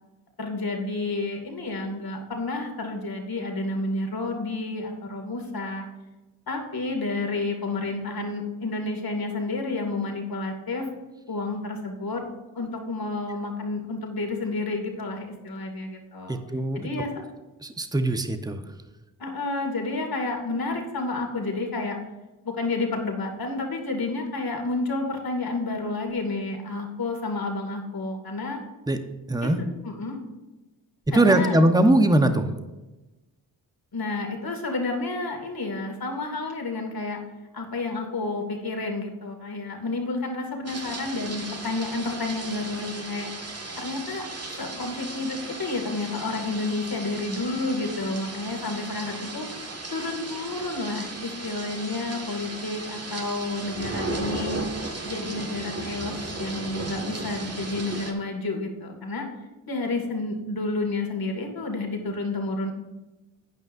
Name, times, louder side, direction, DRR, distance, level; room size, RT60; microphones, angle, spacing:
voice 1, 0.4-5.9 6.5-10.9 11.3-12.2 12.5-16.4 16.7-17.1 19.2-22.0 22.4-28.6 29.4-29.5 29.8-30.2 31.1-31.6 33.9-37.2 37.5-43.3 43.8-44.3 44.6-49.5 49.9-54.6 55.0-59.3 59.7-62.7, left 2 dB, 45° left, 3 dB, 2.3 m, -30 dB
voice 2, 16.3-16.9 17.6-18.6 28.9-29.0 29.3-29.6 31.1-32.5, right 1 dB, 10° right, 8 dB, 1.0 m, -21 dB
sound 1, 40.7-58.1, right 2 dB, 30° right, 1.9 m, -36 dB
12.0 x 9.0 x 2.6 m, 1.1 s
supercardioid pair, 45°, 49 cm